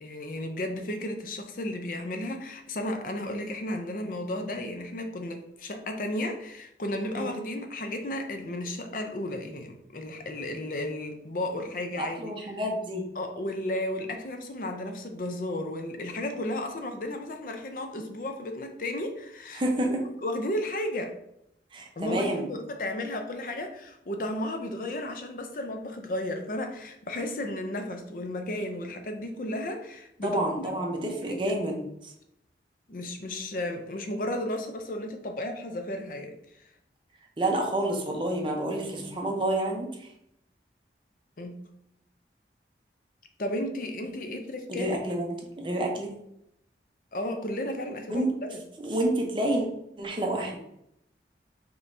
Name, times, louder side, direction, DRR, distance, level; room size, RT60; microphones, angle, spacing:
voice 1, 0.0-12.3 13.2-19.6 20.2-21.1 22.0-30.7 31.0-31.4 32.9-36.7 41.4-41.6 43.4-45.0 47.1-48.6, left 1 dB, 50° left, 5 dB, 0.5 m, -34 dB
voice 2, 12.0-13.0 19.5-20.0 21.7-22.4 30.2-32.1 37.4-40.1 44.7-46.1 48.1-48.3 48.8-49.7 50.0-50.6, right 1 dB, 30° right, 1 dB, 0.7 m, -29 dB
5.2 x 3.0 x 2.6 m, 0.78 s
head